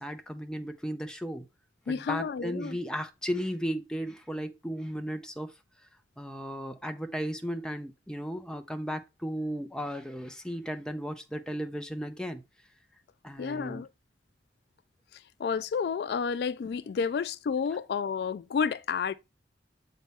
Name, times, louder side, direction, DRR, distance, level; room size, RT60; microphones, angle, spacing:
voice 1, 0.0-1.5 1.9-5.5 6.2-12.4 13.2-13.8, equal, 5° left, 0.5 m, -35 dB
voice 2, 1.9-2.8 13.4-13.9 15.1-19.1, left 6 dB, 65° left, 0.3 m, -31 dB
7.2 x 4.2 x 3.4 m
head